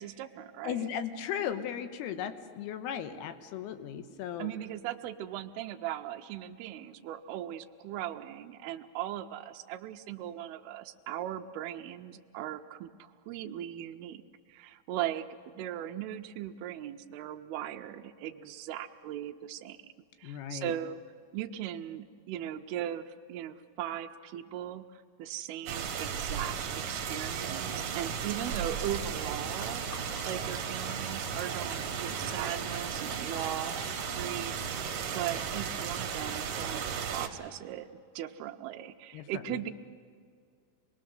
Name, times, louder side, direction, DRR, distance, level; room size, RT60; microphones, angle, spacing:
voice 1, 0.0-1.0 4.4-14.2 14.5-19.8 20.2-21.0 21.3-26.6 26.9-29.8 30.2-34.8 35.1-37.9 38.2-39.7, right 11 dB, 80° right, 4 dB, 2.6 m, -38 dB
voice 2, 0.6-4.5 20.2-20.7 39.1-39.6, left 9 dB, 80° left, 9 dB, 3.0 m, -36 dB
sound 1, 25.7-37.3, right 7 dB, 60° right, 2.5 m, -35 dB
sound 2, 29.5-34.2, left 6 dB, 60° left, 2.3 m, -51 dB
25.0 x 21.0 x 6.5 m, 2.1 s
omnidirectional pair, 4.7 m